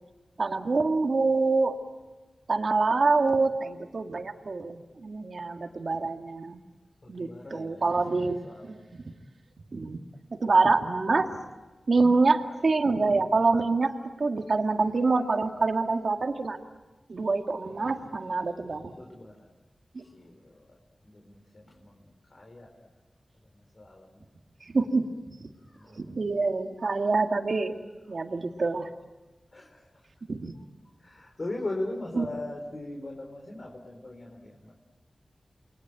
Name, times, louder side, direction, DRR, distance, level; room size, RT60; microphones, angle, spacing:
voice 1, 0.4-1.8 2.5-6.6 7.1-8.8 9.7-10.0 10.4-11.4 11.9-16.6 17.1-18.9 19.9-20.0 24.7-25.5 25.9-27.8 28.1-28.9 30.3-30.5 32.2-32.3, right 3 dB, 70° right, 4 dB, 2.0 m, -26 dB
voice 2, 7.0-9.0 12.0-12.4 18.9-19.5 20.0-20.8 21.0-22.8 23.5-24.3 25.6-26.1 28.0-28.2 29.5-29.9 31.0-34.7, left 2 dB, 55° left, 1 dB, 4.4 m, -40 dB
29.5 x 22.0 x 9.0 m, 1.2 s
cardioid pair, 45°, 0 cm